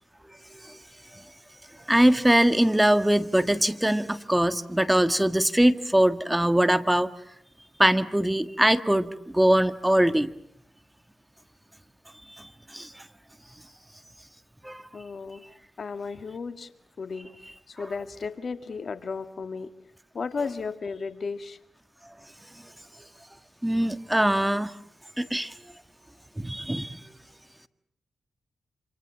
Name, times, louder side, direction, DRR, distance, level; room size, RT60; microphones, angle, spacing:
voice 1, 1.9-7.1 7.8-10.3 12.3-13.1 14.6-14.8 17.8-17.9 23.6-24.7 25.2-25.5 26.4-27.0, right 1 dB, 10° right, 11 dB, 1.7 m, -22 dB
voice 2, 14.9-15.4 15.8-16.7 17.0-17.3 17.7-19.7 20.1-21.6, left 4 dB, 60° left, 10 dB, 1.9 m, -34 dB
27.5 x 27.5 x 7.3 m, 0.70 s
supercardioid pair, 40°, 0 cm